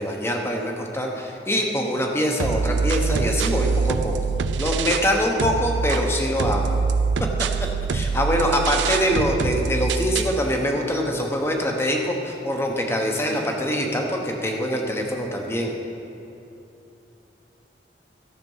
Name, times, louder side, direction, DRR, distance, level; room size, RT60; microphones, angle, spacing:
voice 1, 0.0-4.3 4.6-6.8 7.9-15.7, equal, 15° left, 1 dB, 1.0 m, -24 dB
sound 1, 2.4-5.1 5.4-10.4, right 5 dB, 80° right, 0.4 m, -24 dB
14.0 x 6.7 x 5.6 m, 2.9 s
head